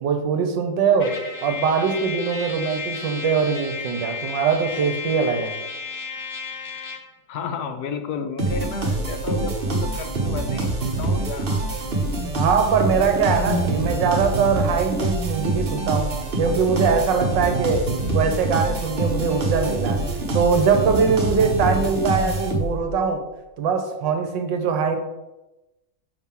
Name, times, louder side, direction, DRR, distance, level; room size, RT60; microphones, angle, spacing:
voice 1, 0.0-5.6 12.3-20.0 20.3-23.2 23.6-25.0, right 5 dB, 70° right, 6 dB, 1.4 m, -22 dB
Trumpet, 1.0-7.1, left 4 dB, 55° left, 0.9 m, -33 dB
voice 2, 7.3-11.6, left 5 dB, 75° left, 8 dB, 0.9 m, -32 dB
sound 1, 8.4-22.9, right 2 dB, 35° right, 0.9 m, -25 dB
5.9 x 5.6 x 3.7 m, 1.0 s
omnidirectional pair, 2.2 m